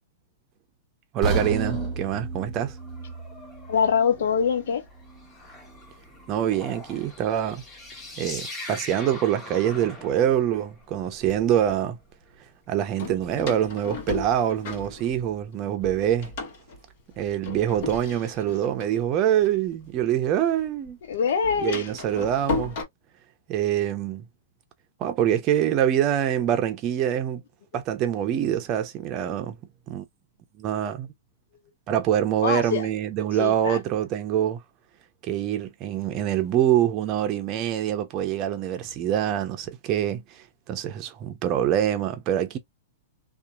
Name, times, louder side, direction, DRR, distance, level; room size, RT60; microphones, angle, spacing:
voice 1, 1.1-2.8 6.3-7.6 8.2-12.0 12.7-16.3 17.2-21.0 21.6-22.8 23.5-24.2 25.0-27.4 27.7-29.6 29.9-30.0 30.6-31.1 31.9-34.6 35.2-42.6, right 10 dB, 30° right, 0.6 m, -25 dB
sound 1, 1.2-5.3 5.6-5.8 6.4-6.5, right 3 dB, 10° right, 1.3 m, -32 dB
sound 2, 2.8-11.0 13.1-13.2, left 2 dB, 10° left, 1.2 m, -42 dB
voice 2, 3.7-4.8 21.1-21.9 32.4-32.9 33.4-33.8, left 6 dB, 70° left, 0.8 m, -24 dB
Door, 9.8-9.9 10.7-11.8 13.0-15.5 15.8-20.3 20.6-22.8, left 3 dB, 50° left, 1.3 m, -35 dB
2.8 x 2.5 x 2.3 m
hypercardioid pair, 150°, 0 cm